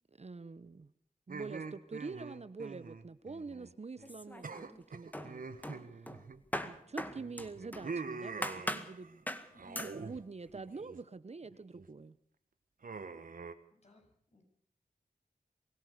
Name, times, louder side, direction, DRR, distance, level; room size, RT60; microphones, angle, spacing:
voice 1, 0.2-0.9 1.3-5.4 6.9-9.2 9.8-12.2, right 4 dB, 45° right, 14 dB, 0.9 m, -46 dB
sound 1, 1.3-3.7 4.0-4.1 4.4-6.8 7.1-9.1 9.5-10.2 10.5-11.0 11.4-11.9 12.8-13.5, right 4 dB, 70° right, 1.6 m, -45 dB
sound 2, 4.0-4.8 5.1-7.9 8.4-8.9 9.3-9.5 9.7-10.0, left 1 dB, 10° left, 1.9 m, -40 dB
voice 2, 13.7-14.4, left 1 dB, 45° left, 3 dB, 7.5 m, -61 dB
23.5 x 16.5 x 6.8 m, 0.66 s
cardioid pair, 50°, 15 cm